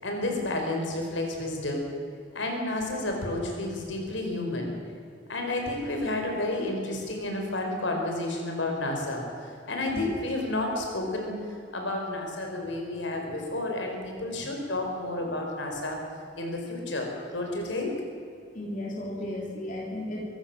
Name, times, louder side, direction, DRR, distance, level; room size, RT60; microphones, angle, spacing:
voice 1, 0.0-1.8 2.3-4.7 5.3-9.2 9.7-11.3 11.7-16.0 16.4-17.9, left 2 dB, 75° left, 2 dB, 4.9 m, -31 dB
voice 2, 18.5-20.2, left 1 dB, 45° left, -2 dB, 3.5 m, -34 dB
24.5 x 14.0 x 7.5 m, 2.5 s
head